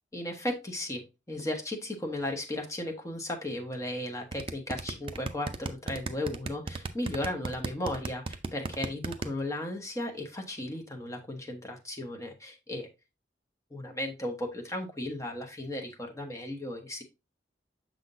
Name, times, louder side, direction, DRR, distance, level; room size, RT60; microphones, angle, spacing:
voice 1, 0.1-12.9 13.7-17.0, left 1 dB, 15° left, 2 dB, 1.1 m, -35 dB
sound 1, 4.3-9.3, right 3 dB, 30° right, 0.5 m, -34 dB
6.5 x 5.8 x 2.6 m, 0.26 s
head